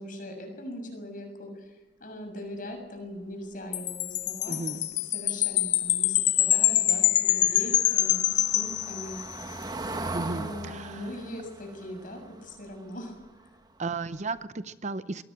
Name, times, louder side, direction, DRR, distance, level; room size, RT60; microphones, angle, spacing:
voice 1, 0.0-1.7 2.0-9.2 10.3-13.1, equal, 50° left, 4 dB, 6.9 m, -40 dB
Wind chime, 3.7-9.4, left 13 dB, 80° left, 0.9 m, -25 dB
voice 2, 4.5-4.9 10.1-11.1 13.8-15.2, right 3 dB, 40° right, 13 dB, 0.7 m, -34 dB
Car passing by / Engine, 6.6-13.6 13.9-14.2 14.4-14.5, right 2 dB, 25° right, 1.3 m, -40 dB
22.5 x 18.5 x 8.8 m, 1.1 s
head